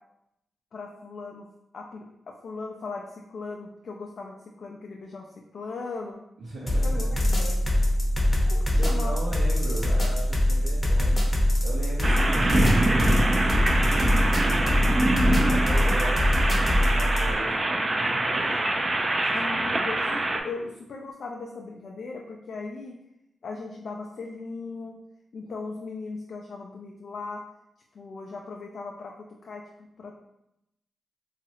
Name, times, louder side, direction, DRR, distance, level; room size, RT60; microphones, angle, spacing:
voice 1, 0.7-1.5 1.7-2.1 2.4-6.2 6.8-7.6 8.5-9.2 19.3-22.9 23.4-25.0 25.3-27.4 27.9-30.1, left 3 dB, 65° left, 0 dB, 0.3 m, -38 dB
voice 2, 6.4-7.1 8.8-19.6, right 1 dB, 75° right, -6 dB, 0.7 m, -39 dB
sound 1, 6.7-17.3, left 1 dB, 20° left, 0.7 m, -23 dB
sound 2, 12.0-20.4, right 2 dB, 30° right, 0.3 m, -25 dB
3.0 x 2.4 x 2.8 m, 0.85 s
cardioid pair, 75°, 0 cm